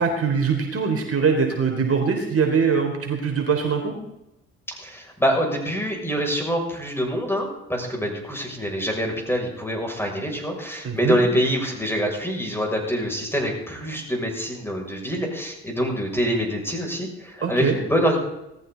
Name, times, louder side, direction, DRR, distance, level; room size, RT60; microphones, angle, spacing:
voice 1, 0.0-3.9 10.8-11.2 17.4-17.8, right 5 dB, 45° right, 3 dB, 3.8 m, -22 dB
voice 2, 4.7-18.2, equal, 5° left, 1 dB, 6.8 m, -25 dB
19.0 x 14.0 x 4.1 m, 0.85 s
hypercardioid pair, 55°, 33 cm